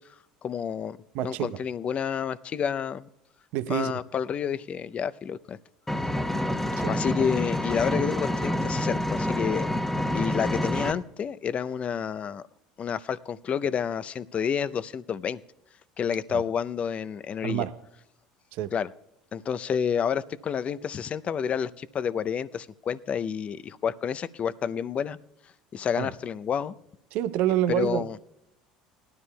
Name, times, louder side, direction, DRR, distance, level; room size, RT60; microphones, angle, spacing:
voice 1, 0.4-1.0 1.2-3.1 3.7-5.6 6.9-9.7 10.1-12.4 12.8-15.4 16.0-17.6 18.7-18.9 19.3-25.2 25.7-26.8 27.7-28.2, left 7 dB, 40° left, 0.6 m, -29 dB
voice 2, 1.1-1.6 3.5-4.0 6.8-7.0 16.3-16.4 17.4-17.8 18.5-18.7 26.0-26.1 27.1-28.2, right 12 dB, 65° right, 0.6 m, -28 dB
Engine, 5.9-10.9, left 1 dB, 10° left, 1.0 m, -27 dB
19.5 x 12.5 x 2.3 m
hypercardioid pair, 75°, 3 cm